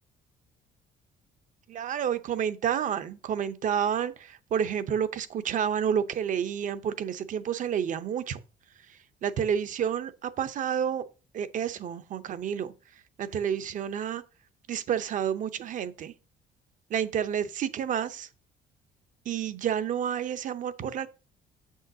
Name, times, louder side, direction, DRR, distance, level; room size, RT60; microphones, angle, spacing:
voice 1, 1.7-8.4 8.9-11.1 11.3-12.7 13.2-14.2 14.7-16.1 16.9-18.3 19.3-21.1, right 8 dB, 50° right, 0.6 m, -30 dB
7.3 x 6.3 x 2.7 m
cardioid pair, 110°, 17 cm